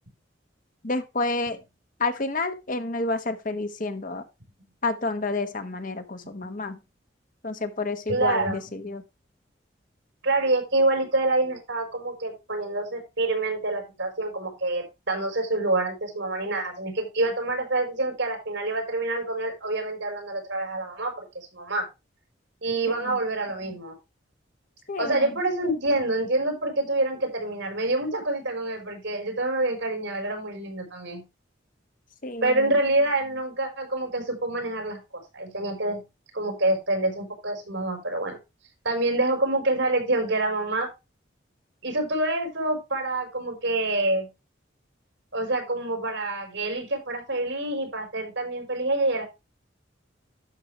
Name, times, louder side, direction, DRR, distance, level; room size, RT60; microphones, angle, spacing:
voice 1, 0.8-1.6 2.0-4.2 4.8-6.8 7.4-9.0 22.9-23.2 24.9-25.3 32.2-32.7, left 3 dB, 45° left, 1.2 m, -29 dB
voice 2, 8.1-8.6 10.2-21.9 22.6-23.9 25.0-31.2 32.4-35.0 35.3-36.0 36.3-38.4 38.8-40.9 41.8-44.3 45.3-49.2, right 2 dB, 75° right, 4.4 m, -26 dB
11.5 x 6.7 x 3.2 m
head